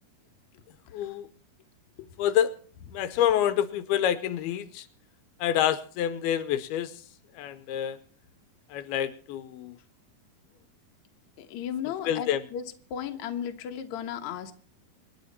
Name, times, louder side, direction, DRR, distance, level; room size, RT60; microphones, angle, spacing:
voice 1, 0.9-1.3 2.2-2.5 2.9-4.9 5.4-6.9 7.4-8.0 8.7-9.8 12.1-12.4, left 10 dB, 85° left, 12 dB, 2.8 m, -27 dB
voice 2, 11.4-12.6 12.9-14.5, left 9 dB, 60° left, 5 dB, 2.2 m, -35 dB
27.0 x 10.0 x 4.3 m, 0.43 s
omnidirectional pair, 4.4 m